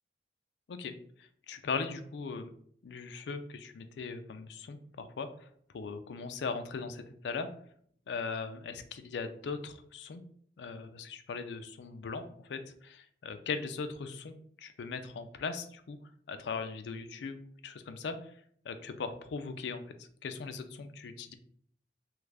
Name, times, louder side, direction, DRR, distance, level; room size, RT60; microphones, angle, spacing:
voice 1, 1.5-2.5 2.8-5.5 5.7-7.5 8.1-10.2 10.6-16.0 16.3-18.3 18.6-21.3, left 4 dB, 80° left, 9 dB, 0.4 m, -39 dB
3.0 x 2.4 x 3.3 m, 0.62 s
head